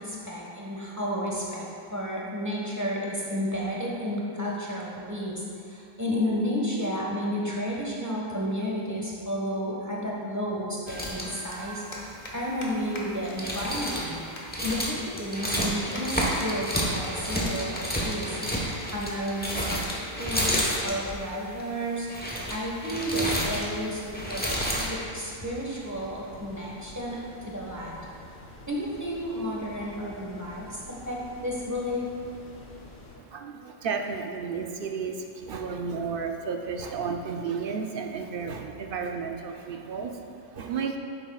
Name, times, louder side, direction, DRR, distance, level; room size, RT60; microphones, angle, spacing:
voice 1, 0.0-18.4 18.9-27.2 27.5-28.0 28.7-32.1, equal, 15° right, -5 dB, 1.3 m, -32 dB
sound 1, 10.9-24.9, equal, 10° left, 1.1 m, -31 dB
sound 2, 11.5-11.6 11.9-12.3 12.6-12.7 12.9-13.0 13.3-13.4 13.6-14.1 14.3-14.4 14.9-15.0 15.5-16.0 16.3-16.7 17.0-17.1 17.4-17.5 17.7-17.8 18.2-18.4 19.2-19.4, left 2 dB, 45° left, 1.2 m, -42 dB
sound 3, 23.5-33.2, left 1 dB, 70° left, 1.6 m, -48 dB
voice 2, 33.2-41.0, right 5 dB, 60° right, 4 dB, 0.7 m, -33 dB
9.9 x 8.2 x 2.4 m, 2.5 s
omnidirectional pair, 1.1 m